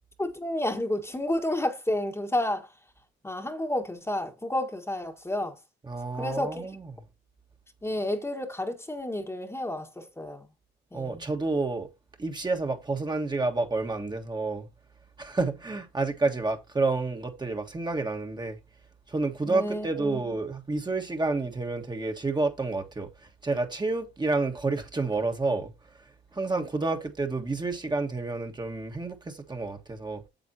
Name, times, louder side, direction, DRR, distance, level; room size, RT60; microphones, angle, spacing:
voice 1, 0.2-2.7 3.2-5.6 6.2-6.7 7.8-10.5 10.9-11.2 19.4-20.2, left 1 dB, 15° left, 1.5 m, -31 dB
voice 2, 5.8-6.8 10.9-11.9 12.2-14.7 15.2-18.6 19.1-23.1 23.4-25.7 26.3-30.2, right 3 dB, 20° right, 1.5 m, -29 dB
9.1 x 7.3 x 2.8 m
cardioid pair, 90°, 20 cm